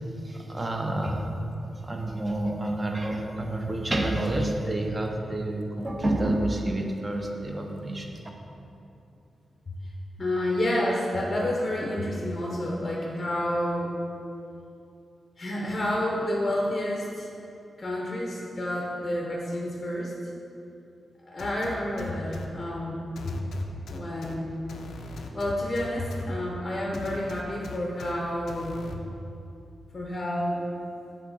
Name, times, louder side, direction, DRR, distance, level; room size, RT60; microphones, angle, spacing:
voice 1, 0.2-1.3 1.8-8.2, right 1 dB, 20° right, 2 dB, 0.5 m, -29 dB
voice 2, 10.2-13.9 15.4-17.3 17.8-20.1 21.2-23.3 23.9-24.6 25.3-28.8 29.9-30.6, left 1 dB, 25° left, -3 dB, 0.6 m, -29 dB
sound 1, 21.4-22.5 23.2-24.3 24.7-26.2 26.9-28.1 28.5-28.9, left 4 dB, 85° left, 0.4 m, -40 dB
7.0 x 3.6 x 4.0 m, 2.7 s
wide cardioid pair, 180°, 0 cm